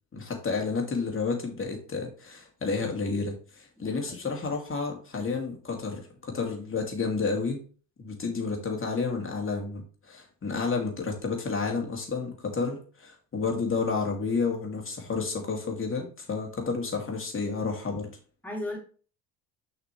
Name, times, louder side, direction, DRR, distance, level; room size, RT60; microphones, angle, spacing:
voice 1, 0.1-7.6 8.0-18.1, left 4 dB, 25° left, 1 dB, 2.8 m, -31 dB
voice 2, 3.8-4.4 18.4-18.8, left 1 dB, 5° left, -1 dB, 3.3 m, -37 dB
6.8 x 5.8 x 3.3 m, 0.40 s
hypercardioid pair, 70°, 50 cm